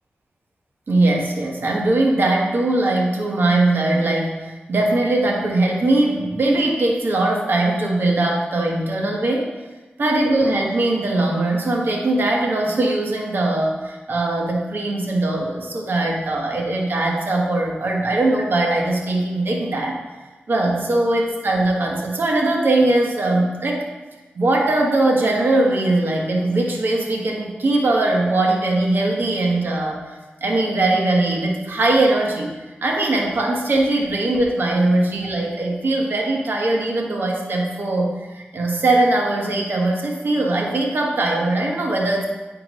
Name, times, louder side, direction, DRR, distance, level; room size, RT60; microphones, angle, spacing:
voice 1, 0.9-9.5 10.0-20.0 20.5-23.8 24.3-42.3, right 2 dB, 65° right, 0 dB, 1.2 m, -20 dB
8.6 x 5.9 x 3.0 m, 1.2 s
cardioid pair, 65°, 4 cm